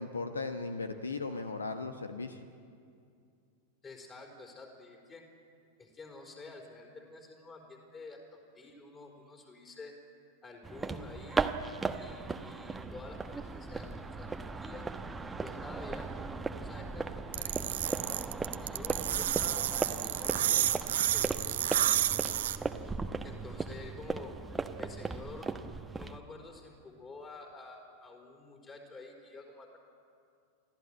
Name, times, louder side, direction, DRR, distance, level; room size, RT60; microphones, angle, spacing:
voice 1, 0.0-2.4, left 3 dB, 75° left, 9 dB, 1.0 m, -37 dB
voice 2, 3.8-5.3 5.8-9.9 10.4-11.5 11.9-14.9 15.4-16.1 16.6-21.9 23.2-24.3 24.8-25.5 25.9-29.8, left 3 dB, 20° left, 2 dB, 4.5 m, -49 dB
sound 1, 10.6-26.2, right 4 dB, 10° right, 1.0 m, -37 dB
sound 2, 17.3-22.6, right 12 dB, 60° right, 0.9 m, -30 dB
24.0 x 15.0 x 9.8 m, 2.4 s
figure-of-eight pair, 90°, 0 cm